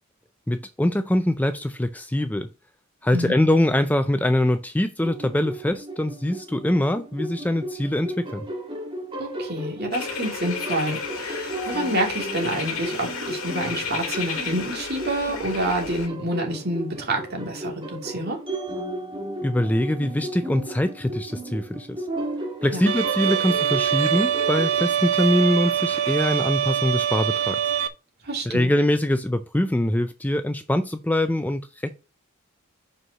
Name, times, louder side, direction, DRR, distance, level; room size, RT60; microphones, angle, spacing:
voice 1, 0.5-2.5 3.0-8.4 19.4-22.0 22.6-27.6 28.5-31.9, left 1 dB, 10° left, 0.4 m, -23 dB
sound 1, 5.0-24.9, right 1 dB, 25° right, 1.8 m, -35 dB
voice 2, 9.2-18.4 22.7-22.9 28.2-28.7, right 1 dB, 50° right, 2.5 m, -28 dB
sound 2, 9.9-16.1, left 5 dB, 70° left, 2.4 m, -32 dB
Bowed string instrument, 22.9-27.9, right 9 dB, 75° right, 0.9 m, -24 dB
5.7 x 5.5 x 6.2 m
head